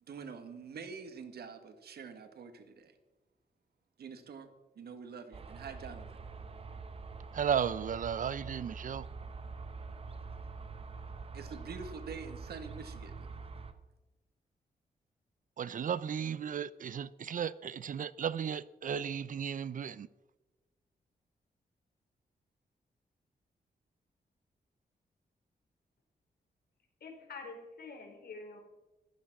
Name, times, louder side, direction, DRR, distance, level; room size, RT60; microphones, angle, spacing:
voice 1, 0.1-2.9 4.0-4.5 4.7-6.2 11.3-13.3, right 5 dB, 85° right, 1.7 m, -46 dB
sound 1, 5.3-13.7, right 4 dB, 35° right, 1.1 m, -45 dB
voice 2, 7.3-9.1 15.6-20.1, right 8 dB, 55° right, 0.6 m, -34 dB
voice 3, 27.0-28.6, left 4 dB, 75° left, 4.3 m, -46 dB
14.5 x 12.5 x 6.1 m
wide cardioid pair, 130°, 16 cm